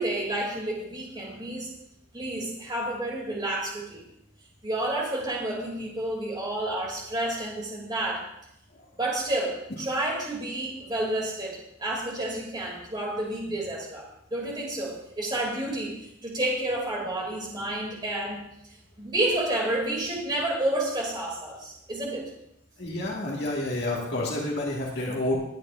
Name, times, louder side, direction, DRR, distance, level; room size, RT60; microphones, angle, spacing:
voice 1, 0.0-1.7 2.1-4.1 4.6-8.2 9.0-14.0 14.3-18.5 19.0-22.3, right 1 dB, 25° right, -2 dB, 3.2 m, -30 dB
voice 2, 22.8-25.3, left 1 dB, 60° left, -3 dB, 2.2 m, -29 dB
20.0 x 9.7 x 2.7 m, 0.77 s
head